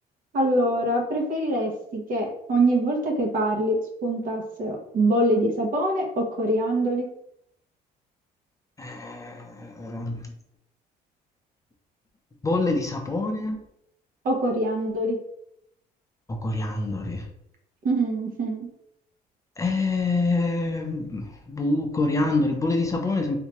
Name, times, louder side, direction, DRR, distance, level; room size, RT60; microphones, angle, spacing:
voice 1, 0.3-7.1 14.2-15.2 17.8-18.7, right 1 dB, 55° right, 1 dB, 1.1 m, -24 dB
voice 2, 8.8-10.3 12.4-13.6 16.3-17.2 19.6-23.4, left 2 dB, 20° left, 2 dB, 0.6 m, -26 dB
3.4 x 2.8 x 2.9 m, 0.76 s
cardioid pair, 110°, 17 cm